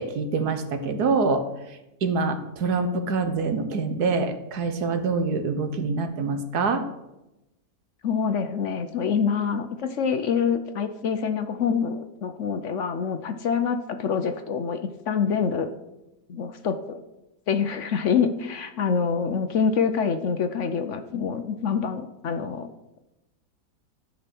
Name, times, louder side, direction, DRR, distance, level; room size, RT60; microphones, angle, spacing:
voice 1, 0.0-6.8, right 4 dB, 85° right, 7 dB, 1.6 m, -25 dB
voice 2, 8.0-14.8 15.1-15.7 16.3-17.0 17.5-22.7, left 6 dB, 60° left, 8 dB, 1.0 m, -26 dB
13.0 x 5.6 x 6.0 m, 0.94 s
omnidirectional pair, 1.6 m